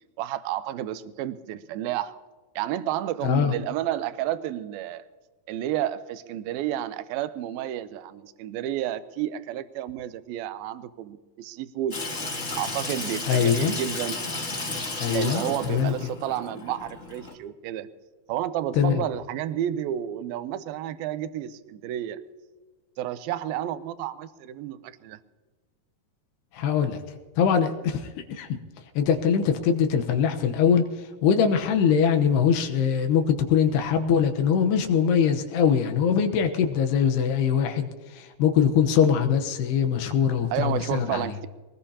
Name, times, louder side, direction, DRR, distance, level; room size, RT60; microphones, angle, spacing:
voice 1, 0.2-2.1 2.6-5.1 5.5-12.0 12.5-14.2 15.1-17.9 18.3-22.2 23.0-25.2 40.5-41.5, right 12 dB, 75° right, 2.4 m, -31 dB
voice 2, 3.2-3.5 13.3-13.8 15.0-15.4 15.7-15.9 18.7-19.0 26.5-27.0 27.4-28.6 29.0-41.3, left 7 dB, 85° left, 3.1 m, -22 dB
Water tap faucet / Sink (filling or washing), 11.9-17.3, left 2 dB, 25° left, 1.8 m, -33 dB
22.5 x 19.5 x 2.9 m
omnidirectional pair, 4.7 m